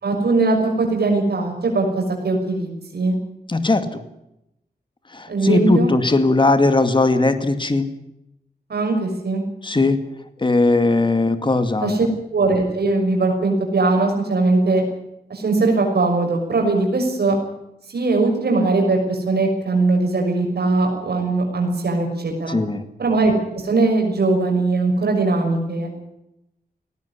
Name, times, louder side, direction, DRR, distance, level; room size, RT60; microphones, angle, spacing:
voice 1, 0.0-3.1 5.3-5.9 8.7-9.4 11.8-14.8 15.3-17.3 17.9-22.6 23.0-25.9, right 3 dB, 80° right, 1 dB, 6.3 m, -20 dB
voice 2, 3.5-4.0 5.1-7.9 9.6-10.0 10.4-12.0 22.5-22.8, left 2 dB, 30° left, 9 dB, 2.2 m, -18 dB
19.0 x 17.5 x 9.9 m, 0.84 s
wide cardioid pair, 115°, 17 cm